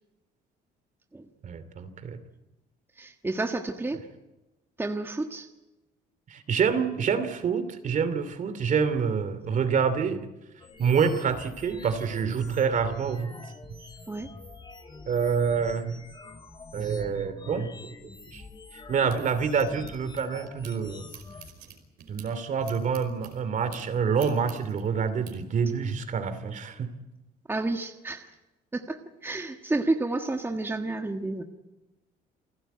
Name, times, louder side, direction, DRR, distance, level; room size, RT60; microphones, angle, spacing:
voice 1, 1.4-2.2 6.3-10.3 10.8-13.3 15.1-16.0 16.7-18.4 18.7-21.1 22.1-26.9, right 6 dB, 50° right, 11 dB, 2.7 m, -27 dB
voice 2, 3.0-4.0 4.8-5.5 14.1-14.3 27.5-28.3 28.7-31.4, right 2 dB, 15° right, 5 dB, 1.5 m, -30 dB
sound 1, 10.6-21.5, left 3 dB, 25° left, 2.8 m, -46 dB
sound 2, 18.4-20.7 21.1-25.3, right 8 dB, 70° right, 5.0 m, -49 dB
28.5 x 16.0 x 9.3 m, 1.1 s
cardioid pair, 110°, 17 cm